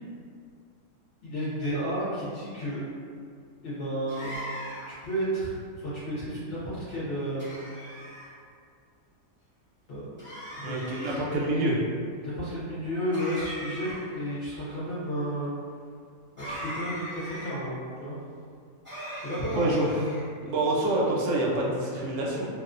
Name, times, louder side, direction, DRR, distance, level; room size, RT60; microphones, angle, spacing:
voice 1, 1.2-2.8 3.6-4.5 4.9-7.5 9.9-10.1 10.5-11.2 12.2-15.5 16.4-18.2 19.2-19.7, equal, 55° left, -10 dB, 0.8 m, -32 dB
sound 1, 4.1-5.0 7.4-8.3 10.2-11.1 13.1-14.2 16.4-17.6 18.8-20.3, equal, 10° right, 0.6 m, -39 dB
voice 2, 10.6-11.8 19.5-19.9 20.4-22.5, right 2 dB, 70° right, -3 dB, 0.8 m, -26 dB
2.4 x 2.3 x 2.4 m, 2.2 s
omnidirectional pair, 1.5 m